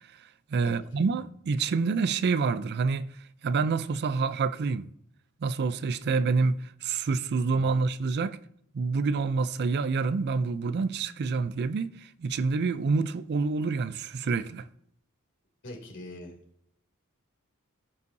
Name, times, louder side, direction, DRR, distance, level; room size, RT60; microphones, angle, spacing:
voice 1, 0.5-3.1 3.4-4.9 5.4-8.4 8.7-14.7, right 4 dB, 50° right, 0.4 m, -27 dB
voice 2, 15.6-16.3, left 1 dB, 60° left, 2.7 m, -43 dB
16.0 x 5.5 x 2.6 m
head